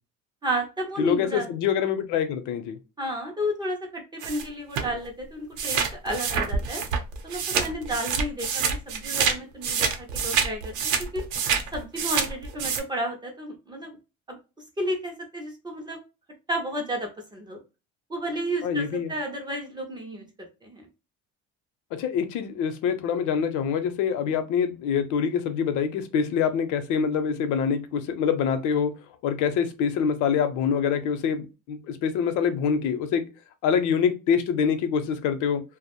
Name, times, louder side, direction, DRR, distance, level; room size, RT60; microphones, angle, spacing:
voice 1, 0.4-1.5 3.0-6.8 7.2-11.2 11.7-14.0 14.3-14.4 14.8-16.0 16.5-17.6 18.1-20.3 20.6-20.9, equal, 15° right, 0.3 m, -32 dB
voice 2, 1.0-2.8 18.6-19.1 22.0-28.9 29.2-33.2 33.6-35.6, left 7 dB, 75° left, 0.6 m, -25 dB
sound 1, 4.2-4.4 4.8-4.9 5.6-9.3 9.6-12.8, right 6 dB, 75° right, 0.6 m, -27 dB
2.4 x 2.0 x 2.8 m
cardioid pair, 170°, 30 cm